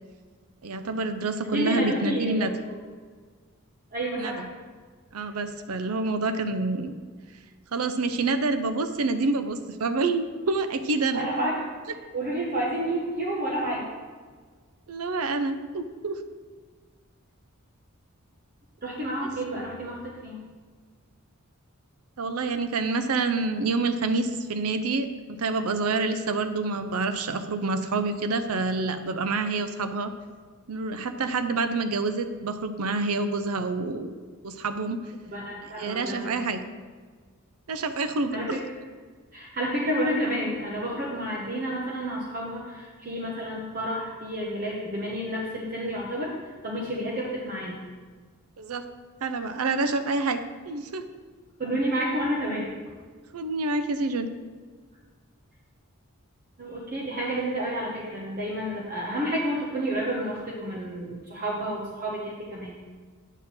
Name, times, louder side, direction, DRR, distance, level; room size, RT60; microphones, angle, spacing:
voice 1, 0.6-2.5 4.2-4.5 5.1-6.9 7.7-11.3 14.9-16.2 22.2-30.1 30.7-34.1 34.4-35.0 35.8-36.6 37.7-38.6 48.6-48.9 49.2-50.4 50.7-51.0 53.3-54.3, right 3 dB, 80° right, 10 dB, 0.6 m, -27 dB
voice 2, 1.5-2.8 3.9-4.5 11.1-11.7 12.1-13.9 18.8-20.4 35.3-36.4 38.3-38.6 39.3-47.8 51.6-52.7 56.6-62.7, equal, 40° right, -4 dB, 1.1 m, -30 dB
9.0 x 4.4 x 7.1 m, 1.5 s
head